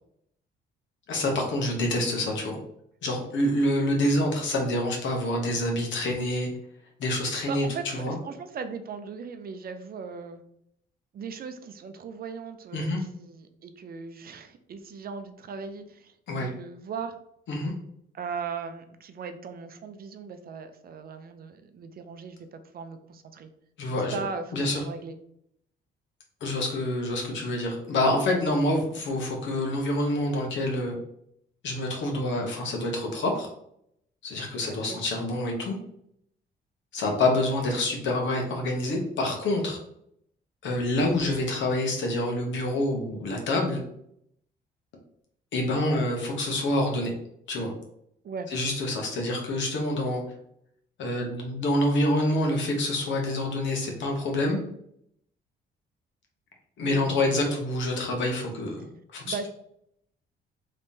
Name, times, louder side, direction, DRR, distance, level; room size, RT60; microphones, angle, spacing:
voice 1, 1.1-2.6 3.0-6.5 7.0-8.1 12.7-13.0 16.3-16.5 17.5-17.7 23.8-24.2 24.5-24.8 26.4-31.0 31.6-33.5 34.2-35.8 36.9-39.8 40.6-43.8 45.5-47.1 47.5-47.7 48.5-50.2 51.0-54.6 56.8-58.8 59.1-59.2, left 1 dB, 70° left, 1 dB, 1.1 m, -27 dB
voice 2, 7.5-10.4 11.1-17.2 18.1-23.5 23.9-25.2 34.6-35.3 48.2-48.5 56.8-57.6 59.2-59.5, right 5 dB, 50° right, 8 dB, 0.5 m, -38 dB
3.5 x 3.2 x 2.7 m, 0.72 s
cardioid pair, 90°, 20 cm